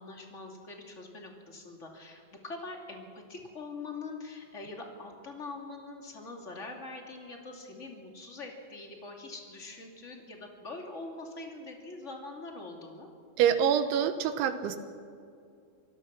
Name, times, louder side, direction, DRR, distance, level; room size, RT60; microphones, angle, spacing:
voice 1, 0.0-13.1, left 3 dB, 20° left, 1 dB, 2.0 m, -43 dB
voice 2, 13.4-14.8, right 8 dB, 85° right, 10 dB, 3.6 m, -26 dB
26.0 x 18.5 x 6.0 m, 2.4 s
omnidirectional pair, 5.2 m